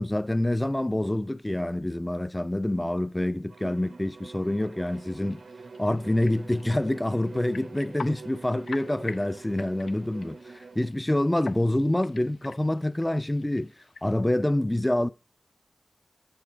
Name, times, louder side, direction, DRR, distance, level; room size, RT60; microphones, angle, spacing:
voice 1, 0.0-5.4 5.8-13.7 14.0-15.1, left 1 dB, 15° left, 0.4 m, -27 dB
Bowed string instrument, 3.5-10.9, right 4 dB, 75° right, 0.7 m, -45 dB
sound 1, 4.8-14.1, left 4 dB, 85° left, 0.4 m, -47 dB
7.9 x 6.9 x 4.6 m
wide cardioid pair, 65°, 0 cm